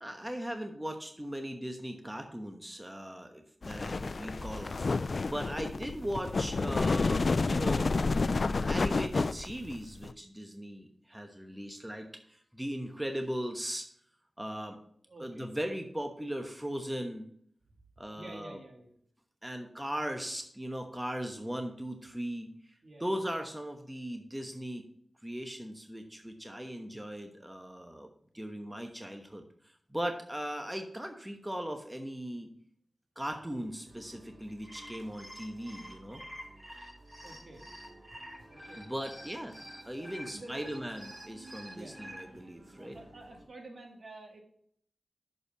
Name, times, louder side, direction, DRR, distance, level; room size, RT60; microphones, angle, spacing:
voice 1, 0.0-7.9 8.7-13.9 14.4-14.8 15.2-17.3 18.0-18.6 19.4-22.5 23.0-24.8 25.2-29.5 29.9-32.5 33.2-36.2 38.8-39.5 39.9-43.0, equal, 10° right, 4 dB, 1.1 m, -38 dB
sound 1, 3.6-10.1, left 3 dB, 65° left, 0.3 m, -30 dB
voice 2, 15.1-15.5 18.1-18.9 19.8-19.9 22.8-23.3 37.2-37.7 38.5-39.1 40.0-40.7 41.7-42.0 42.8-44.4, right 2 dB, 60° right, 2 dB, 1.8 m, -50 dB
sound 2, 33.2-43.4, right 1 dB, 85° right, 2.3 m, -56 dB
sound 3, 34.5-42.2, equal, 30° right, 4.1 m, -48 dB
6.7 x 5.4 x 6.7 m, 0.64 s
cardioid pair, 50°, 0 cm